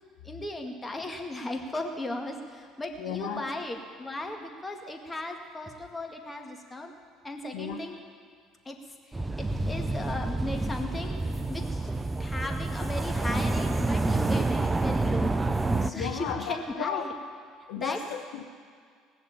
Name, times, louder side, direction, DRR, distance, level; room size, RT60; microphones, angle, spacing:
voice 1, 0.2-6.9 7.2-8.0 8.7-8.8 9.1-11.9 12.2-15.3 15.8-17.1 17.8-18.0, left 1 dB, 20° left, 3 dB, 2.0 m, -36 dB
voice 2, 3.0-3.5 7.5-7.8 15.9-17.1 17.7-18.4, left 8 dB, 75° left, 3 dB, 0.9 m, -34 dB
sound 1, 9.1-15.9, right 2 dB, 20° right, 0.7 m, -28 dB
18.0 x 6.8 x 8.9 m, 2.1 s
hypercardioid pair, 65°, 0 cm